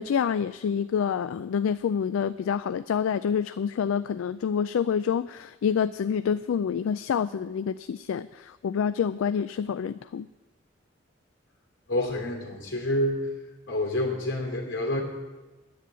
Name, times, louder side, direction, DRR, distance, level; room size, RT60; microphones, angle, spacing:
voice 1, 0.0-10.3, left 7 dB, 85° left, 13 dB, 0.3 m, -27 dB
voice 2, 11.9-13.3 13.7-15.0, left 1 dB, 70° left, 0 dB, 2.9 m, -28 dB
10.5 x 8.4 x 8.2 m, 1.2 s
head